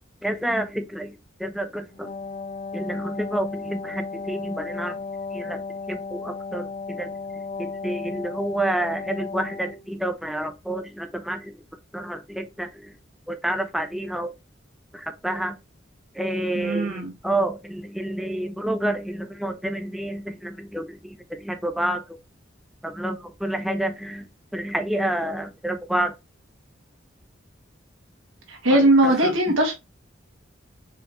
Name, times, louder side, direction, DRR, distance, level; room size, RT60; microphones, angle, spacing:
voice 1, 0.2-2.1 2.7-5.0 5.3-5.6 5.9-7.1 7.6-11.6 11.9-12.9 13.3-14.3 14.9-15.6 16.2-22.2 22.8-26.1 28.7-29.4, right 1 dB, ahead, 0.4 m, -29 dB
Wind instrument woodwind instrument, 1.9-9.9, left 4 dB, 40° left, 0.8 m, -35 dB
voice 2, 16.5-17.1 28.5-29.7, right 1 dB, 90° right, 1.5 m, -19 dB
4.7 x 3.3 x 3.1 m
head